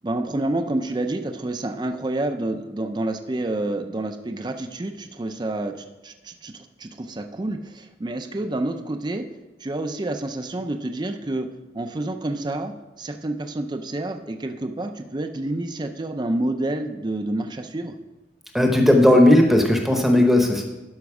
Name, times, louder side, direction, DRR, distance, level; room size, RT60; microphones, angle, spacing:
voice 1, 0.0-9.3 9.6-11.5 11.7-18.0, right 2 dB, 25° right, 6 dB, 0.4 m, -28 dB
voice 2, 18.5-20.6, left 1 dB, ahead, 2 dB, 0.8 m, -16 dB
12.0 x 5.1 x 4.8 m, 1.1 s
head